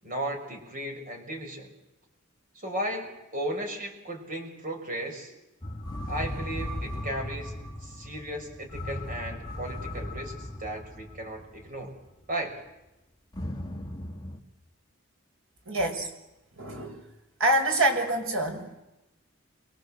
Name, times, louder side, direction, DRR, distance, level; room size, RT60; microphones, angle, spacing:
voice 1, 0.0-1.7 2.5-5.3 6.1-7.5 7.8-12.0 12.3-12.6, right 1 dB, 40° right, 3 dB, 5.9 m, -35 dB
sound 1, 5.6-12.1 13.3-14.4, left 1 dB, 20° left, 2.2 m, -37 dB
voice 2, 15.7-16.1 16.5-17.0 17.4-18.8, right 1 dB, 80° right, 4 dB, 6.2 m, -26 dB
29.5 x 25.0 x 7.8 m, 0.97 s
head